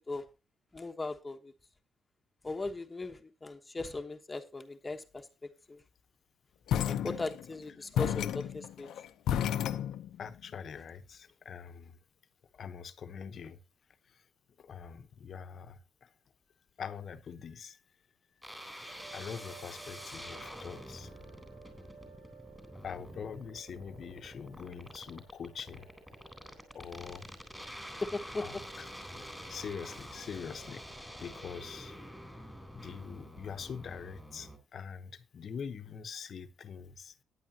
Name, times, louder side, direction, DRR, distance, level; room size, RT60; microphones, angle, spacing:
voice 1, 0.7-1.5 2.4-5.2 5.7-5.8 6.8-8.9 28.0-28.4, left 3 dB, 20° left, 1.1 m, -38 dB
sound 1, 6.7-7.6 8.0-10.3, left 10 dB, 80° left, 0.6 m, -32 dB
voice 2, 6.9-7.2 10.2-12.0 12.5-13.6 14.1-14.2 14.6-16.1 16.8-17.8 19.1-21.1 22.8-25.9 26.7-27.3 28.3-28.9 29.1-30.8 31.2-32.0 32.7-37.1, left 6 dB, 55° left, 0.9 m, -44 dB
sound 2, 18.4-34.6, equal, 5° right, 3.6 m, -47 dB
sound 3, 18.9-30.2, right 5 dB, 80° right, 3.8 m, -57 dB
15.0 x 10.0 x 2.8 m
cardioid pair, 90°, 0 cm